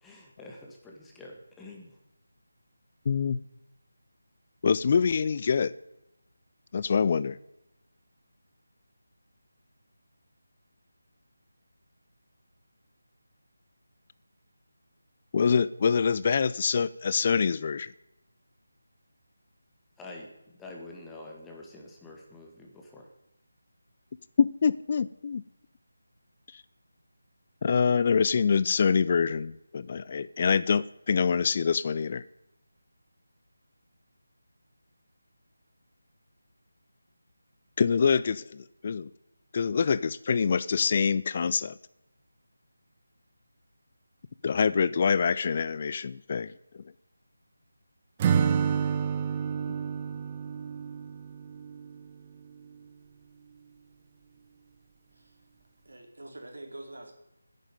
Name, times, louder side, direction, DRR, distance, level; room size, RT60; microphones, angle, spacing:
voice 1, 0.0-2.0 20.0-23.1, left 2 dB, 5° left, -1 dB, 2.0 m, -47 dB
voice 2, 3.1-3.4 4.6-5.7 6.7-7.4 15.3-17.9 24.4-25.4 26.5-26.6 27.6-32.2 37.8-39.1 39.5-41.8 44.4-46.8, left 6 dB, 35° left, 18 dB, 0.4 m, -25 dB
Acoustic guitar / Strum, 48.2-52.1, right 7 dB, 20° right, 0.7 m, -29 dB
voice 3, 55.8-57.1, right 1 dB, 70° right, 3 dB, 4.0 m, -45 dB
10.5 x 9.2 x 9.2 m, 0.91 s
figure-of-eight pair, 160°, 0 cm